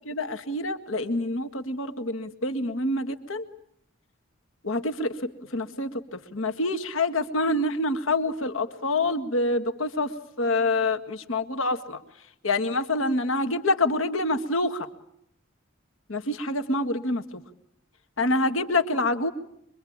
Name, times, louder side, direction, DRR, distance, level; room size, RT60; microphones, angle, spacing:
voice 1, 0.1-3.5 4.6-10.1 10.4-12.0 12.4-14.9 16.1-17.4 18.2-19.3, left 2 dB, 70° left, 7 dB, 1.9 m, -26 dB
24.5 x 23.5 x 8.7 m, 0.74 s
head